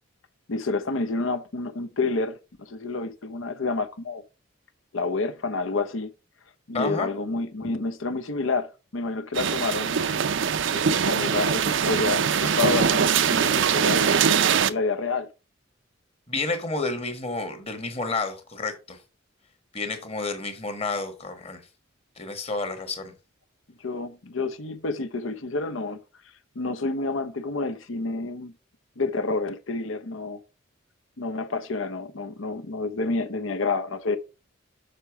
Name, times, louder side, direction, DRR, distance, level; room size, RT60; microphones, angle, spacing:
voice 1, 0.5-4.2 4.9-6.1 6.7-10.0 10.7-14.1 14.7-15.3 23.8-26.0 26.5-28.5 29.0-30.4 31.2-34.2, left 3 dB, 75° left, 0.9 m, -29 dB
voice 2, 6.7-7.1 16.3-19.0 19.7-21.6 22.2-23.1, left 3 dB, 30° left, 1.4 m, -30 dB
sound 1, 9.4-14.7, right 7 dB, 65° right, 0.5 m, -22 dB
6.7 x 5.6 x 4.7 m
head